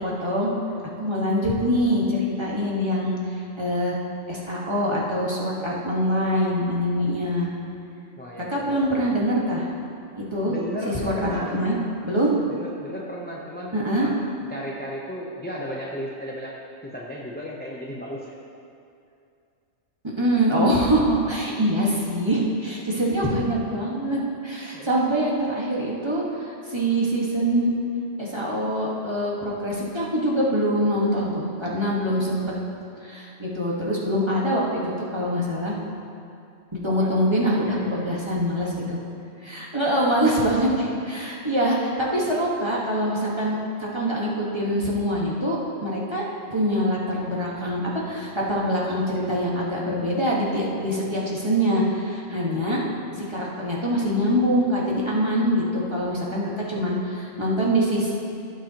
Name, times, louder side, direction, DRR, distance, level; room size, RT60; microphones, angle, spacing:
voice 1, 0.0-0.5 1.0-4.0 4.3-7.5 8.5-9.7 10.2-10.5 10.9-11.8 12.0-12.4 13.7-14.1 20.2-27.7 28.2-32.4 33.0-35.7 36.7-39.0 39.4-46.2 46.5-52.8 53.3-58.1, equal, 20° right, -5 dB, 1.6 m, -24 dB
voice 2, 8.2-9.1 10.5-11.6 12.5-14.1 14.5-16.5 16.8-18.4 24.7-25.0 36.7-37.2 37.6-38.1 52.5-52.6, equal, 10° left, -4 dB, 0.7 m, -35 dB
16.5 x 7.6 x 3.0 m, 2.5 s
omnidirectional pair, 1.4 m